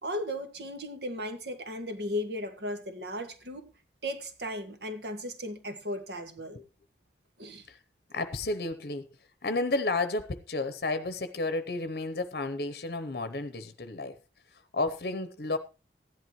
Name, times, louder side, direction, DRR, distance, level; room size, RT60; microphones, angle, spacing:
voice 1, 0.0-3.7 4.0-6.6 7.4-7.7, equal, 70° right, 1.8 m, -36 dB
voice 2, 8.1-9.1 9.4-14.2 14.5-15.6, left 2 dB, 55° left, 0.8 m, -32 dB
15.5 x 11.0 x 3.0 m
head